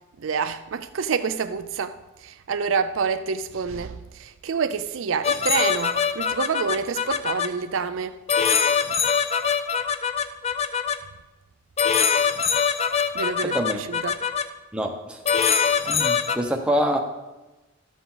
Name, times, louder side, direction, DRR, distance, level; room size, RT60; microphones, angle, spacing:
voice 1, 0.2-8.2 13.1-14.2, right 6 dB, 65° right, 0.4 m, -28 dB
sound 1, 5.2-7.5 8.3-11.0 11.8-14.4 15.2-16.4, left 6 dB, 30° left, 0.4 m, -23 dB
voice 2, 14.7-15.2 15.8-17.0, equal, 5° right, 0.9 m, -25 dB
13.0 x 7.0 x 3.9 m
head